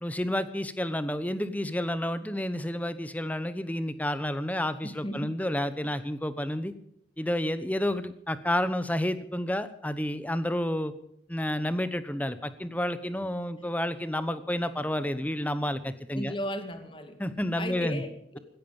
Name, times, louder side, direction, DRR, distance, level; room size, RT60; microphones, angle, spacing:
voice 1, 0.0-6.7 7.2-10.9 11.3-16.3 17.2-18.0, left 1 dB, 10° left, 13 dB, 0.9 m, -30 dB
voice 2, 4.8-5.4 13.6-13.7 16.1-17.2 17.6-18.4, equal, 25° left, 7 dB, 2.1 m, -36 dB
16.5 x 15.0 x 5.4 m, 0.74 s
head